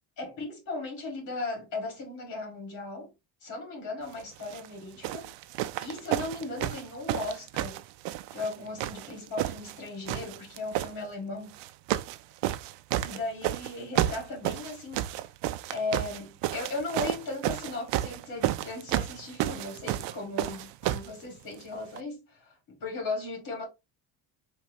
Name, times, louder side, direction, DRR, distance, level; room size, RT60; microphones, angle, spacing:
voice 1, 0.2-3.1 3.4-5.3 5.8-7.8 8.3-11.6 13.0-15.3 15.7-23.7, left 2 dB, 45° left, 2.4 m, -37 dB
sound 1, 4.4-4.7 5.0-8.5 8.8-9.8 10.1-10.9 11.5-12.2 12.4-21.1 22.0-22.1, right 14 dB, 80° right, 0.5 m, -31 dB
4.7 x 3.2 x 3.0 m
cardioid pair, 165°, 42 cm